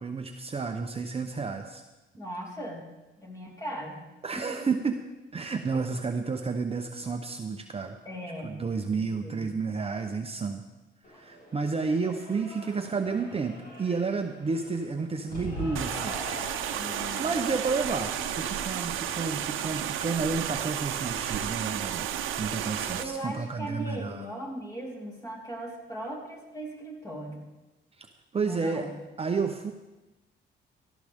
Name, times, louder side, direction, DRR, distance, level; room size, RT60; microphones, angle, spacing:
voice 1, 0.0-1.8 4.2-5.0 5.3-8.0 8.4-10.6 11.1-16.2 17.2-22.1 22.4-24.3 28.0-28.9 29.2-29.7, right 4 dB, 30° right, 5 dB, 0.8 m, -31 dB
voice 2, 2.2-2.8 3.2-4.0 4.3-4.7 8.0-8.6 8.9-9.5 16.8-17.3 23.0-27.5 28.4-28.9, right 1 dB, 15° left, -2 dB, 4.1 m, -38 dB
Cheering / Applause, 11.0-18.7, left 1 dB, 50° left, 6.2 m, -42 dB
sound 1, 15.8-23.0, right 10 dB, 85° right, 0.8 m, -32 dB
17.0 x 13.5 x 3.6 m, 1.1 s
cardioid pair, 90°, 20 cm